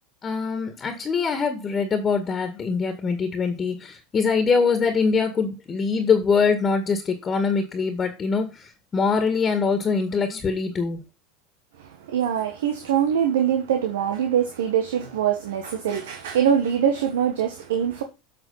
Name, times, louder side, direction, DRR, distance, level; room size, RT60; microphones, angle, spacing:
voice 1, 0.2-11.0, left 5 dB, 30° left, 1.9 m, -23 dB
voice 2, 11.8-18.0, right 9 dB, 75° right, 1.5 m, -23 dB
8.6 x 5.9 x 5.7 m
hypercardioid pair, 85°, 0 cm